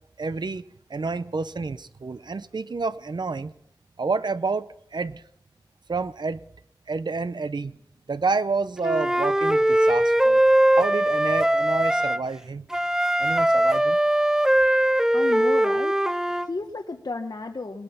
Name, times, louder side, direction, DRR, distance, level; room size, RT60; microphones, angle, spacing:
voice 1, 0.2-0.6 0.9-3.5 4.0-5.2 5.9-6.4 6.9-7.8 8.1-10.4 10.8-12.7 13.2-14.0, right 4 dB, 85° right, 13 dB, 0.6 m, -29 dB
Wind instrument woodwind instrument, 8.8-12.2 12.7-16.5, right 1 dB, 5° right, 0.5 m, -21 dB
voice 2, 15.1-17.8, left 3 dB, 65° left, 4 dB, 1.0 m, -33 dB
20.0 x 8.8 x 5.8 m, 0.74 s
wide cardioid pair, 60°, 7 cm